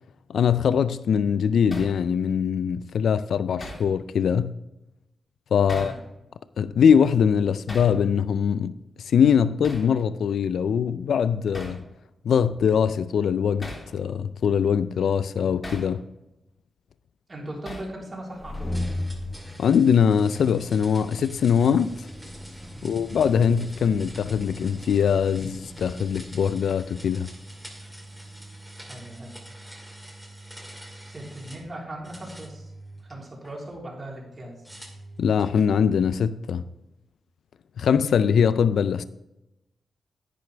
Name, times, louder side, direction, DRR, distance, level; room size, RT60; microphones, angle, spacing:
voice 1, 0.3-4.5 5.5-5.9 6.6-8.7 9.0-11.9 12.2-16.0 19.6-22.1 22.8-27.3 35.2-36.6 37.8-39.0, left 7 dB, 80° left, 0.3 m, -22 dB
Hammer, 1.7-2.0 3.6-3.9 5.7-6.0 7.7-7.9 9.6-9.9 11.5-11.8 13.6-13.9 15.6-15.9 17.6-18.0, left 1 dB, 30° left, 3.0 m, -38 dB
voice 2, 5.7-6.0 17.3-18.7 22.7-22.9 28.8-29.3 31.0-32.7 33.0-34.6, right 1 dB, 30° right, 3.4 m, -39 dB
sound 1, 18.2-28.7, left 1 dB, 10° left, 1.3 m, -39 dB
sound 2, 18.7-31.7 32.0-33.5 34.6-35.6, right 1 dB, 5° right, 2.3 m, -44 dB
10.0 x 9.5 x 3.4 m
cardioid pair, 95°, 0 cm